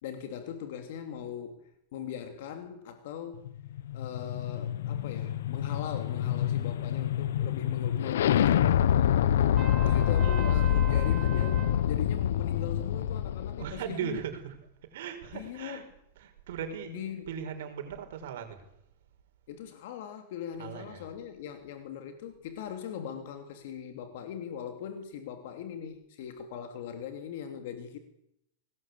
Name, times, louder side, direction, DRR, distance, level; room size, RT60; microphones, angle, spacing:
voice 1, 0.0-3.5 3.9-9.1 9.8-14.2 15.3-15.8 16.9-17.3 19.5-28.0, left 8 dB, 55° left, 2.9 m, -40 dB
sound 1, 3.5-13.6, left 10 dB, 80° left, 0.9 m, -26 dB
Trumpet, 9.6-11.8, right 8 dB, 20° right, 3.1 m, -41 dB
voice 2, 13.6-14.6 14.9-15.8 16.2-18.6 20.6-21.1, right 8 dB, 65° right, 5.2 m, -38 dB
25.0 x 19.5 x 8.5 m
supercardioid pair, 170°, 0 cm